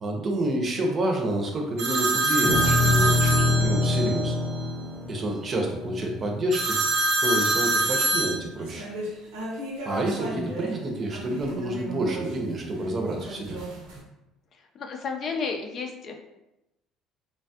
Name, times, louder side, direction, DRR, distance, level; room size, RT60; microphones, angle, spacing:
voice 1, 0.0-4.4 5.1-6.8 7.2-8.9 9.8-13.6, right 1 dB, 40° right, 1 dB, 0.7 m, -28 dB
sound 1, 1.8-4.2 6.5-10.7 11.1-12.2 13.1-14.0, right 2 dB, 85° right, 0.8 m, -27 dB
sound 2, 2.4-6.9, left 2 dB, 5° right, 0.6 m, -25 dB
voice 2, 14.7-16.1, left 5 dB, 50° left, 3 dB, 0.5 m, -32 dB
3.1 x 2.3 x 2.8 m, 0.92 s
supercardioid pair, 90°, 0 cm